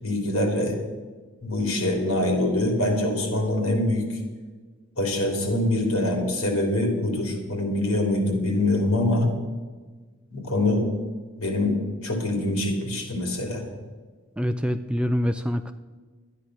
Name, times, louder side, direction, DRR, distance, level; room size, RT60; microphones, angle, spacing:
voice 1, 0.0-0.8 1.4-4.2 5.0-9.3 10.3-10.9 11.4-13.6, left 1 dB, 75° left, 2 dB, 3.4 m, -24 dB
voice 2, 14.4-15.7, equal, 5° right, 9 dB, 0.4 m, -25 dB
12.5 x 10.0 x 6.2 m, 1.4 s
head